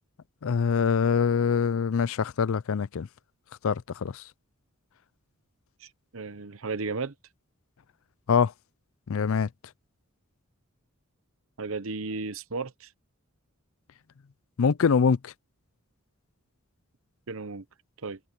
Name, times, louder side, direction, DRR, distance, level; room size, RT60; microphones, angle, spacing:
voice 1, 0.4-3.1 3.6-4.2 8.3-8.5 9.1-9.5 14.6-15.3, left 6 dB, 65° left, 0.4 m, -24 dB
voice 2, 5.8-7.1 11.6-12.9 17.3-17.6 18.0-18.2, right 4 dB, 65° right, 0.9 m, -34 dB
head